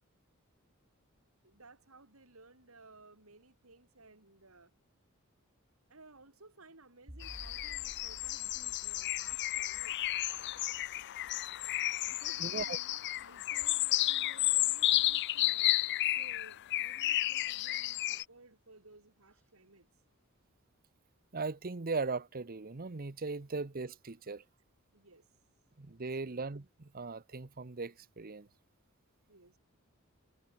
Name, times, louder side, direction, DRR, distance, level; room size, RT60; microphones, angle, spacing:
voice 1, 1.4-4.7 5.9-10.1 12.1-15.9 16.1-19.9 24.9-25.3 26.0-26.4 29.3-29.6, right 2 dB, 70° right, 4.4 m, -58 dB
sound 1, 7.1-14.3, equal, 15° right, 1.5 m, -56 dB
sound 2, 7.2-18.2, left 16 dB, 50° left, 0.4 m, -32 dB
voice 2, 12.4-12.8 21.3-24.4 25.8-28.5, right 4 dB, 45° right, 0.9 m, -38 dB
sound 3, 13.6-15.9 16.1-16.6 17.6-17.9 19.3-19.6, equal, 5° left, 3.5 m, -68 dB
head